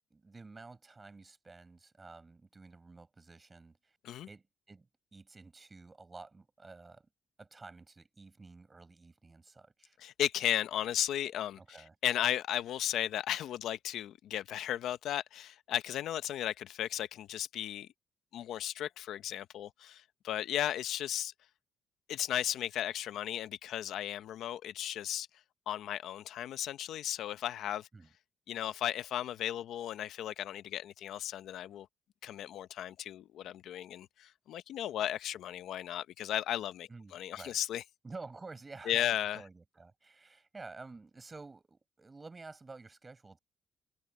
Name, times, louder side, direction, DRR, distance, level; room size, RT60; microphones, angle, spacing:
voice 1, 0.1-4.0 4.3-7.1 7.4-10.0 11.6-11.9 27.9-28.1 36.9-37.6 38.0-43.4, right 3 dB, 25° right, 7.2 m, -51 dB
voice 2, 10.0-11.8 12.0-17.9 18.3-21.3 22.1-25.3 25.7-27.9 28.5-31.9 32.2-37.8 38.9-39.4, left 11 dB, 80° left, 0.9 m, -35 dB
cardioid pair, 90°, 0 cm